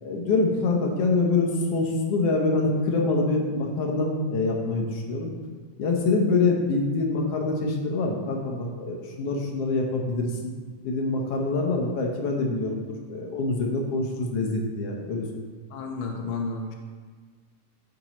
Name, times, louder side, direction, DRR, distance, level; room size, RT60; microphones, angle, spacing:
voice 1, 0.0-5.3 5.8-10.3 10.8-15.3, left 3 dB, 65° left, 1 dB, 1.6 m, -25 dB
voice 2, 15.7-16.7, left 4 dB, 85° left, 1 dB, 1.0 m, -31 dB
13.0 x 5.3 x 3.0 m, 1.5 s
omnidirectional pair, 3.5 m